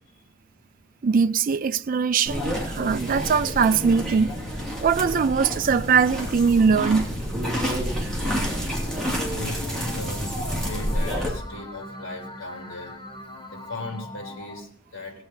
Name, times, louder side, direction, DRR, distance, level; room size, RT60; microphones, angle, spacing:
voice 1, 1.0-4.3 4.8-7.1 7.6-7.7, right 6 dB, 45° right, 0.4 m, -21 dB
sound 1, 2.3-11.3, equal, 5° left, 2.8 m, -29 dB
sound 2, 7.5-14.6, left 2 dB, 25° left, 1.1 m, -41 dB
voice 2, 9.3-13.0 13.5-15.2, left 2 dB, 90° left, 3.5 m, -38 dB
19.0 x 7.8 x 4.2 m
head